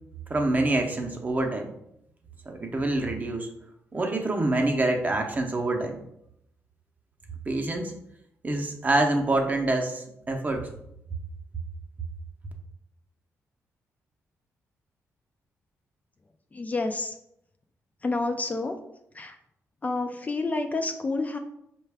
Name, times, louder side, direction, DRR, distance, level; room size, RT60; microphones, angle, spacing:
voice 1, 0.3-1.7 2.5-3.5 3.9-6.0 7.5-7.9 8.4-10.7, right 2 dB, 30° right, 3 dB, 0.7 m, -26 dB
voice 2, 16.5-17.1 18.0-18.8 19.1-19.3 19.8-21.4, left 3 dB, 25° left, 5 dB, 0.3 m, -29 dB
4.6 x 2.3 x 3.4 m, 0.78 s
cardioid pair, 85°, 6 cm